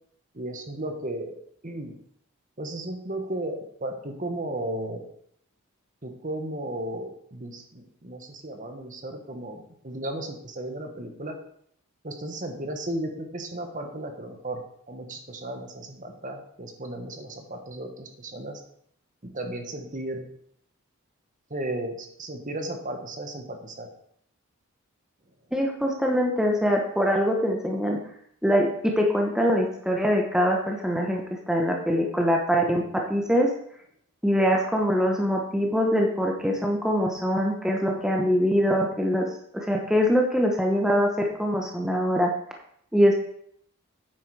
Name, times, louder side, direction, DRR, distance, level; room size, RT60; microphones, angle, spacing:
voice 1, 0.3-1.3 1.6-2.0 2.6-5.0 6.0-11.4 12.0-18.6 19.3-20.3 21.5-23.9, right 1 dB, 35° right, 4 dB, 1.4 m, -35 dB
voice 2, 25.5-28.0 28.4-32.8 33.1-33.5 34.2-39.3 39.5-42.3 42.9-43.1, equal, 5° right, 1 dB, 1.0 m, -23 dB
9.4 x 8.1 x 4.8 m, 0.68 s
head